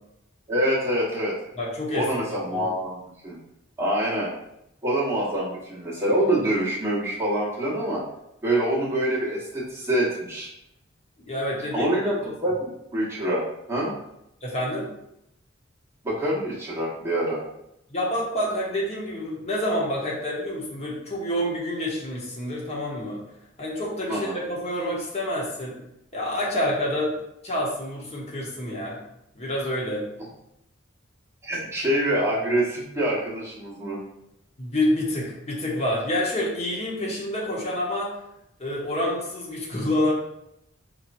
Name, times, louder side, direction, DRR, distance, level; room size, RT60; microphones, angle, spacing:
voice 1, 0.5-1.4 1.9-3.4 3.8-4.3 4.8-8.0 8.4-10.5 11.7-13.9 16.0-17.4 24.1-24.3 31.4-34.0, right 1 dB, 15° right, -8 dB, 1.2 m, -25 dB
voice 2, 1.6-2.1 2.5-2.6 11.3-12.0 14.4-14.9 17.9-23.2 23.6-25.8 26.1-27.1 27.4-29.0 29.3-30.1 34.6-38.2 38.6-40.1, left 1 dB, 35° left, -4 dB, 1.0 m, -27 dB
4.4 x 2.9 x 2.6 m, 0.82 s
head